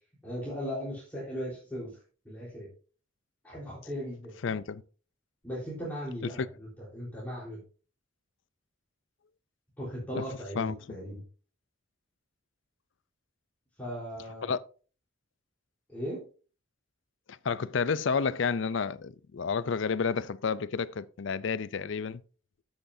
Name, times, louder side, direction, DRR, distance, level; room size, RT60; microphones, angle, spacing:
voice 1, 0.2-2.0 2.2-2.7 3.4-4.3 5.4-7.6 9.8-11.2 13.8-14.5 15.9-16.2, equal, 10° left, 3.9 m, -38 dB
voice 2, 4.4-4.8 6.4-6.5 10.1-10.2 10.6-10.7 14.4-14.6 17.3-22.2, left 5 dB, 65° left, 0.5 m, -30 dB
12.0 x 7.8 x 2.7 m
head